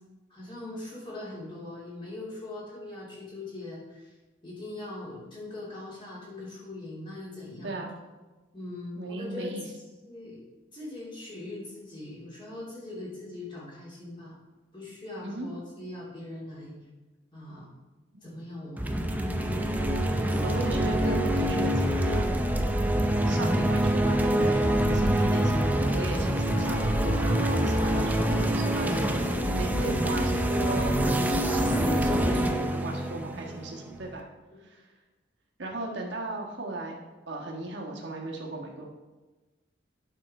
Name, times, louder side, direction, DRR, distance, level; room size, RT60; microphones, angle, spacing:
voice 1, 0.3-4.2 4.4-7.8 8.5-9.5 10.0-10.4 10.7-14.4 14.7-16.7 17.3-17.7 18.2-19.6 20.1-20.9, left 2 dB, 25° left, -6 dB, 3.1 m, -41 dB
voice 2, 7.6-7.9 9.0-9.6 15.2-15.5 18.1-18.3 20.4-22.3 23.2-34.3 34.6-34.8 35.6-37.0 37.3-38.9, right 2 dB, 60° right, -1 dB, 1.6 m, -36 dB
sound 1, 18.8-34.2, right 1 dB, 10° right, 0.5 m, -25 dB
9.3 x 6.2 x 4.4 m, 1.2 s
head